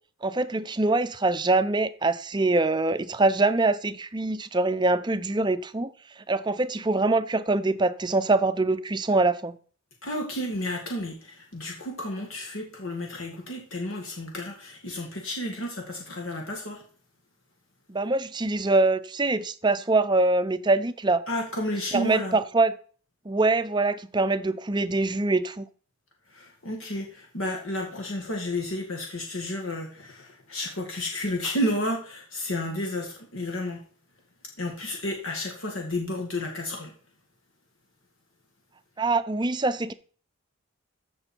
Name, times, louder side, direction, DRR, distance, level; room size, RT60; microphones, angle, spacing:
voice 1, 0.2-5.9 6.2-9.6 17.9-21.2 21.9-22.7 23.3-25.7 39.0-39.9, right 2 dB, 20° right, 0.5 m, -24 dB
voice 2, 10.0-16.8 21.3-22.4 26.3-33.8 34.6-36.9, left 1 dB, 70° left, 2.1 m, -32 dB
14.5 x 6.3 x 4.5 m
head